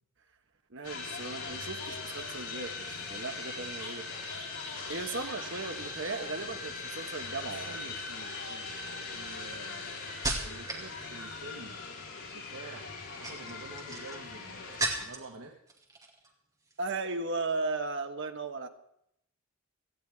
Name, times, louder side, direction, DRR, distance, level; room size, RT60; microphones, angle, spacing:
voice 1, 0.7-4.1 4.9-7.8 16.8-18.7, right 3 dB, 55° right, 6 dB, 1.3 m, -36 dB
sound 1, 0.8-15.1, left 3 dB, 90° left, 4.2 m, -40 dB
sound 2, 7.4-7.8 8.5-10.9 11.2-11.7 12.9-15.4 15.7-16.3 16.6-16.9, right 2 dB, 15° right, 2.2 m, -37 dB
voice 2, 7.6-8.8 9.1-9.9 10.2-11.8 12.3-15.5, right 3 dB, 75° right, 0 dB, 1.6 m, -48 dB
18.0 x 15.0 x 3.6 m, 0.74 s
head